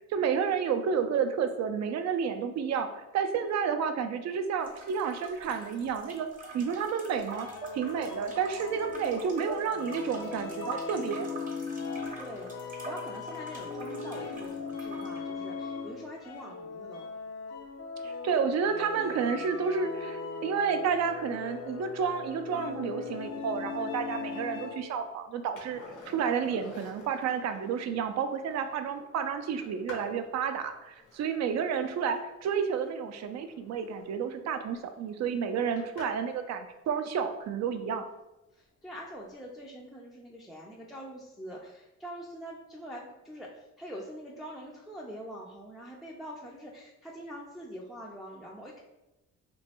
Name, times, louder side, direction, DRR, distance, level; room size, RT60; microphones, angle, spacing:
voice 1, 0.1-6.3 6.5-7.5 7.7-11.3 18.0-25.8 26.1-38.1, right 6 dB, 60° right, 8 dB, 0.4 m, -30 dB
sound 1, 4.6-15.2, right 3 dB, 25° right, 0.7 m, -45 dB
sound 2, 7.3-25.0, left 5 dB, 55° left, 0.5 m, -39 dB
voice 2, 12.2-17.1 38.8-43.5 43.8-48.8, equal, ahead, -3 dB, 0.4 m, -44 dB
Skateboard, 25.6-36.4 39.0-39.1, left 3 dB, 80° left, 0.9 m, -51 dB
3.0 x 2.6 x 2.8 m, 0.98 s
cardioid pair, 90°, 30 cm